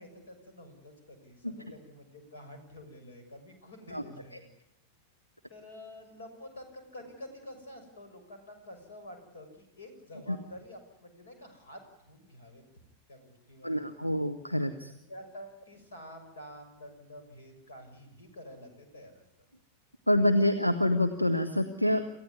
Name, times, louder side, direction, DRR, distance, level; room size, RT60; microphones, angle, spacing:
voice 1, 0.0-4.5 5.5-12.6 13.1-13.9 15.1-19.2, left 1 dB, 65° left, 7 dB, 6.5 m, -49 dB
voice 2, 13.6-14.9 20.1-22.0, left 1 dB, 90° left, 8 dB, 1.2 m, -26 dB
27.5 x 15.5 x 9.7 m, 0.82 s
figure-of-eight pair, 90°, 0 cm